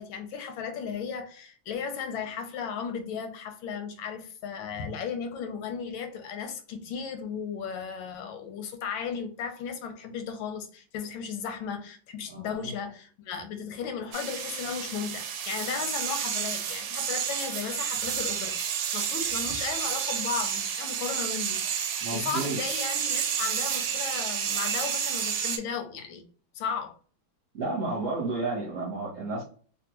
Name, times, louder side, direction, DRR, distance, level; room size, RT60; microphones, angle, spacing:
voice 1, 0.0-18.5 18.9-26.2 26.5-26.9, left 6 dB, 85° left, 1.4 m, -35 dB
voice 2, 12.3-12.7 22.0-22.6 27.5-29.4, right 3 dB, 50° right, 1.0 m, -32 dB
sound 1, 14.1-25.6, right 8 dB, 75° right, 1.1 m, -30 dB
3.5 x 2.2 x 2.8 m
omnidirectional pair, 2.1 m